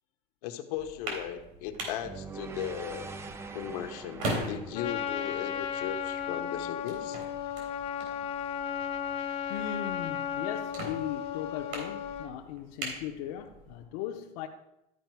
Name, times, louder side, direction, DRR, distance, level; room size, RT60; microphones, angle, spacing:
voice 1, 0.4-3.1 3.5-7.2, left 10 dB, 90° left, 1.0 m, -37 dB
sound 1, 0.8-13.8, right 1 dB, 70° right, 3.3 m, -42 dB
sound 2, 2.0-6.3, right 4 dB, 15° right, 0.3 m, -44 dB
Trumpet, 4.7-12.3, left 8 dB, 30° left, 0.6 m, -35 dB
voice 2, 9.5-14.5, left 11 dB, 70° left, 0.7 m, -38 dB
13.0 x 4.9 x 4.6 m
cardioid pair, 165°, 19 cm